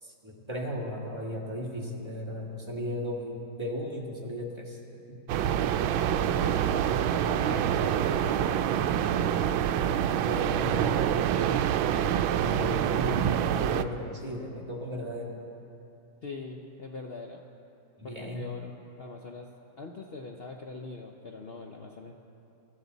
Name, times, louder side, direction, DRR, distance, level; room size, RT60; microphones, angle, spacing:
voice 1, 0.0-4.8 5.1-5.2 5.6-5.7 10.2-11.2 12.4-15.4 18.0-18.4, left 1 dB, 15° right, -3 dB, 1.7 m, -36 dB
sound 1, 5.3-13.8, right 9 dB, 85° right, 1.4 m, -26 dB
voice 2, 6.1-6.9 7.2-9.4 16.2-17.4 18.0-19.5 19.8-22.1, left 3 dB, 70° left, 2 dB, 0.5 m, -42 dB
22.5 x 14.0 x 4.0 m, 2.7 s
omnidirectional pair, 2.1 m